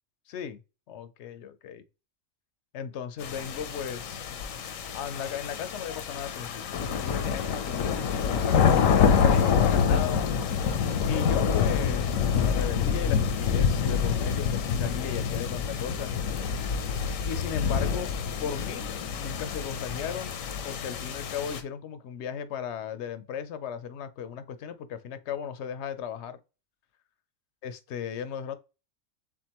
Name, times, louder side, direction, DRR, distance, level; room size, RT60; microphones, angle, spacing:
voice 1, 0.3-0.6 0.9-1.8 2.7-4.3 4.9-10.2 11.0-16.1 17.3-18.1 18.4-18.9 19.2-20.3 20.6-26.4 27.6-28.6, left 8 dB, 65° left, 0.8 m, -36 dB
sound 1, 3.2-21.6, left 7 dB, 85° left, 1.1 m, -27 dB
7.0 x 2.5 x 2.9 m
omnidirectional pair, 1.4 m